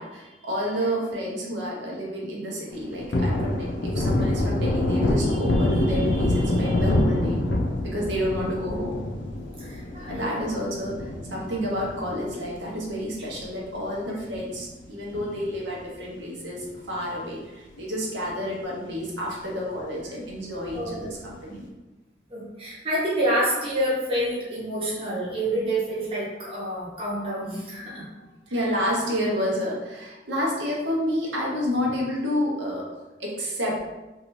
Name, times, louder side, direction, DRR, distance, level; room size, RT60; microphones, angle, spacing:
voice 1, 0.0-7.4 7.8-9.0 10.1-21.7 28.5-32.9 33.2-33.8, equal, 85° right, -3 dB, 0.7 m, -29 dB
Thunder, 2.7-13.4 13.8-13.9 14.3-15.8 16.1-16.2 16.6-17.4 17.8-17.9 18.2-18.3 20.7-21.2, left 1 dB, 90° left, 0.4 m, -26 dB
voice 2, 9.6-10.5 11.5-11.6 20.7-21.1 21.5-21.6 22.3-28.1 28.5-28.7, right 1 dB, 30° right, -6 dB, 0.7 m, -28 dB
2.6 x 2.3 x 3.0 m, 1.1 s
head